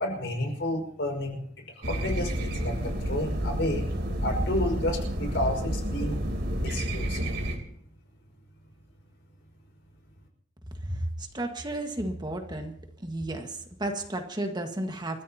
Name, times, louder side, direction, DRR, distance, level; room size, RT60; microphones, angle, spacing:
voice 1, 0.0-1.4 1.8-3.9 4.2-6.2 6.6-7.2, left 1 dB, 65° left, 3 dB, 5.4 m, -31 dB
sound 1, 1.8-7.6, equal, 65° right, 3.4 m, -30 dB
voice 2, 10.8-12.7 13.0-15.2, right 1 dB, 25° right, 4 dB, 1.6 m, -33 dB
29.0 x 14.0 x 2.9 m, 0.66 s
head